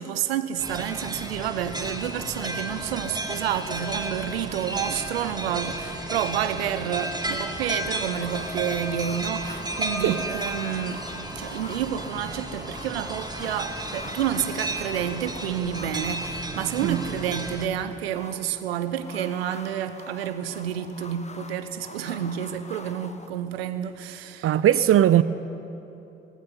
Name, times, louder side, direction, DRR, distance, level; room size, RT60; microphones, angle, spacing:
voice 1, 0.0-24.6, right 10 dB, 75° right, 0.9 m, -29 dB
sound 1, 0.6-17.7, right 1 dB, 15° right, 2.9 m, -33 dB
sound 2, 8.2-23.3, left 3 dB, 20° left, 1.3 m, -45 dB
voice 2, 24.4-25.2, right 11 dB, 45° right, 0.7 m, -19 dB
19.0 x 16.0 x 9.5 m
figure-of-eight pair, 40°, 31 cm